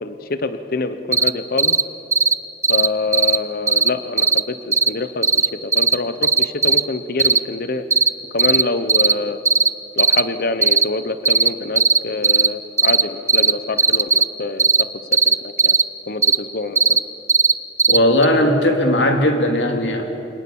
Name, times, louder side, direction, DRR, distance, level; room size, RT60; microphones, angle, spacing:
voice 1, 0.0-1.8 2.7-7.9 8.3-9.4 10.0-14.9 15.3-15.8 16.1-17.0, left 3 dB, 55° left, 11 dB, 1.0 m, -26 dB
sound 1, 1.1-1.3 1.6-1.8 2.1-2.3 2.6-2.9 3.1-3.4 3.7-3.9 4.2-4.4 4.7-4.9 5.2-5.5 5.7-5.9 6.2-6.8 7.2-7.4 7.9-8.1 8.4-8.6 8.9-9.1 9.4-9.7 10.0-10.2 10.6-10.8 11.2-11.5 11.7-12.0 12.2-12.5 12.8-13.0 13.3-13.5 13.8-14.2 14.6-14.8 15.1-15.8 16.2-16.4 16.7-17.0 17.3-17.5 17.8-18.0 18.2-18.3, right 5 dB, 15° right, 0.5 m, -15 dB
voice 2, 17.9-20.2, left 1 dB, 80° left, 3 dB, 2.8 m, -17 dB
26.0 x 19.5 x 7.2 m, 2.6 s
head